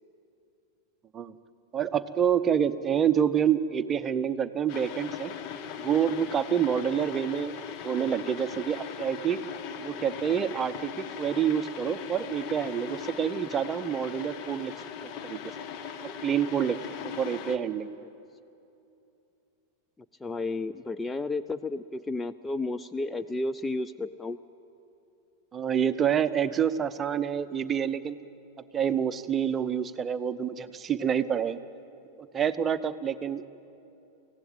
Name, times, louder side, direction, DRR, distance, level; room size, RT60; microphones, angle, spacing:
voice 1, 1.7-5.3 5.8-7.5 7.8-9.5 9.8-14.7 15.2-15.4 16.2-16.8 17.0-17.9 25.5-28.2 28.7-31.6 32.3-33.5, right 8 dB, 20° right, 12 dB, 0.8 m, -27 dB
sound 1, 4.7-17.6, left 7 dB, 40° left, 1.3 m, -39 dB
voice 2, 20.2-24.4, left 2 dB, 10° left, 11 dB, 0.5 m, -32 dB
23.5 x 16.0 x 9.0 m, 2.8 s
figure-of-eight pair, 90°, 0 cm